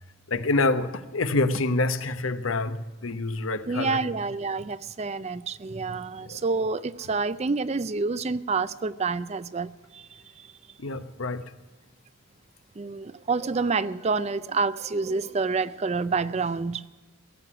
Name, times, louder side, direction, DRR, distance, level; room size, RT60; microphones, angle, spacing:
voice 1, 0.3-4.0 6.3-6.4 10.8-11.5, left 2 dB, 80° left, 1.0 m, -27 dB
voice 2, 3.7-10.0 12.8-16.9, right 4 dB, 30° right, 0.4 m, -28 dB
17.0 x 7.7 x 9.9 m
head